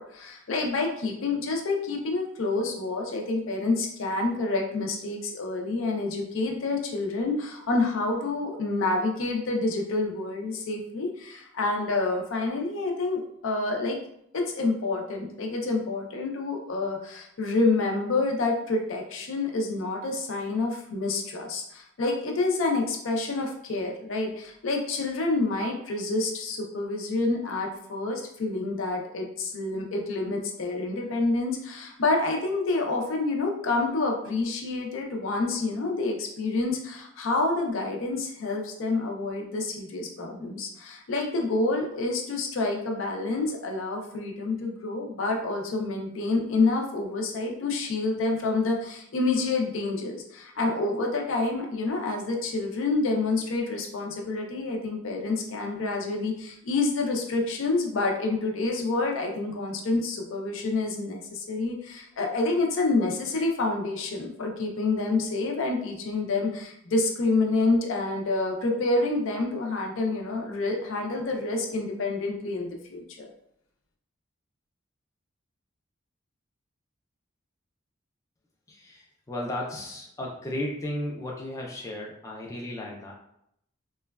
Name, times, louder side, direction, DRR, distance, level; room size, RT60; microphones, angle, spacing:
voice 1, 0.0-14.0 14.3-73.3, left 3 dB, 75° left, 2 dB, 0.5 m, -28 dB
voice 2, 78.7-83.1, left 1 dB, 15° left, -2 dB, 0.3 m, -34 dB
3.0 x 2.2 x 2.2 m, 0.74 s
head